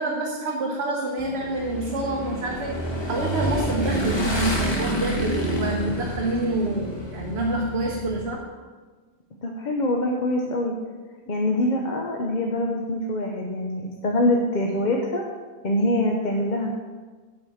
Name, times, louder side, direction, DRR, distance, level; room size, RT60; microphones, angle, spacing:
voice 1, 0.0-2.8 3.1-8.4, right 2 dB, 85° right, 0 dB, 1.2 m, -27 dB
Motorcycle / Engine, 1.2-8.2, equal, 25° left, 1.3 m, -28 dB
voice 2, 9.4-10.7 11.3-15.2 15.6-16.7, left 1 dB, 50° left, 0 dB, 0.9 m, -24 dB
7.6 x 4.9 x 7.0 m, 1.4 s
omnidirectional pair, 1.1 m